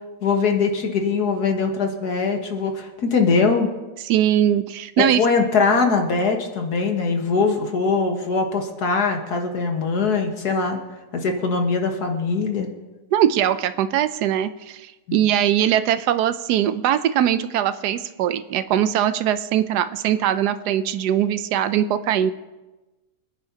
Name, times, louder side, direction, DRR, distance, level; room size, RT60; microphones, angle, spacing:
voice 1, 0.2-3.7 5.0-10.8 11.1-12.7 15.1-15.2, left 4 dB, 80° left, 3 dB, 1.9 m, -22 dB
voice 2, 4.1-5.2 13.1-22.3, right 10 dB, 90° right, 11 dB, 1.2 m, -21 dB
25.0 x 9.9 x 2.8 m, 1.1 s
omnidirectional pair, 1.7 m